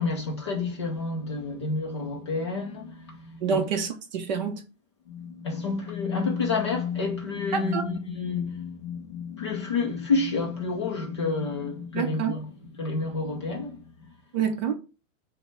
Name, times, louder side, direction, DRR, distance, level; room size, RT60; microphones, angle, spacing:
voice 1, 0.0-3.6 5.1-12.5 12.8-13.8, left 4 dB, 25° left, 0.4 m, -29 dB
voice 2, 3.4-4.6 7.5-7.9 11.9-12.4 14.3-14.7, right 6 dB, 35° right, 0.6 m, -27 dB
5.1 x 2.1 x 4.5 m
supercardioid pair, 170°, 39 cm